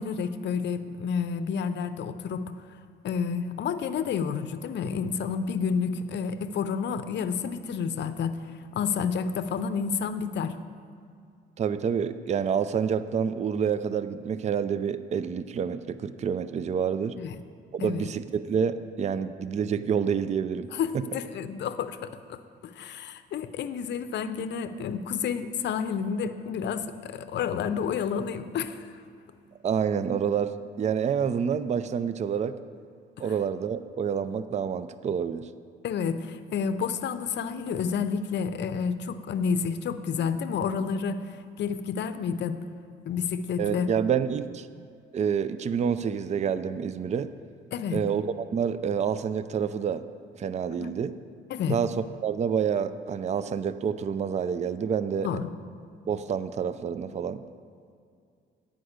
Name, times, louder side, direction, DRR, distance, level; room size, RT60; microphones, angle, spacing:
voice 1, 0.0-2.5 3.0-8.4 8.7-10.6 17.2-17.4 17.8-18.1 20.7-28.9 35.8-42.6 43.1-43.9 47.7-48.0 50.8-50.9 51.5-51.8 55.2-55.5, left 6 dB, 65° left, 12 dB, 0.6 m, -30 dB
voice 2, 11.6-17.2 17.7-20.7 20.9-21.0 29.6-32.6 33.2-35.5 43.6-44.7 45.1-47.3 47.9-50.0 50.4-51.1 51.7-51.9 52.2-55.3 56.1-57.4, right 7 dB, 35° right, 13 dB, 0.4 m, -28 dB
9.8 x 5.2 x 8.0 m, 2.3 s
cardioid pair, 90°, 20 cm